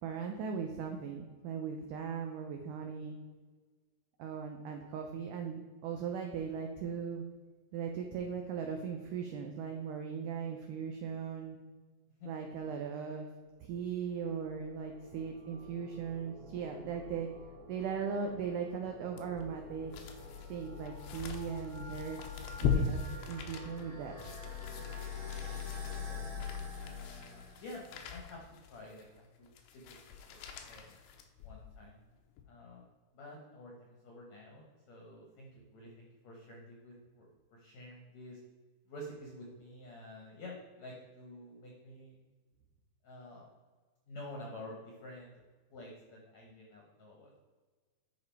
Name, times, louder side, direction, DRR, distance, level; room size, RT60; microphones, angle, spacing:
voice 1, 0.0-3.2 4.2-7.3 7.7-11.6 12.3-13.3 13.6-17.3 17.7-19.9 20.5-22.3 22.6-23.0 23.3-24.1, right 6 dB, 80° right, 4 dB, 1.8 m, -38 dB
sound 1, 13.8-28.0, left 6 dB, 25° right, 0.9 m, -46 dB
sound 2, 19.2-31.8 32.3-32.4, left 6 dB, 85° left, 2.8 m, -40 dB
voice 2, 25.4-26.2 26.8-28.4 28.7-30.0 30.3-31.0 31.4-32.0 32.5-32.9 33.1-38.4 38.9-42.2 43.0-43.5 44.1-45.3 45.7-47.3, left 1 dB, 60° left, -1 dB, 1.9 m, -50 dB
9.7 x 4.9 x 4.6 m, 1.4 s
omnidirectional pair, 4.5 m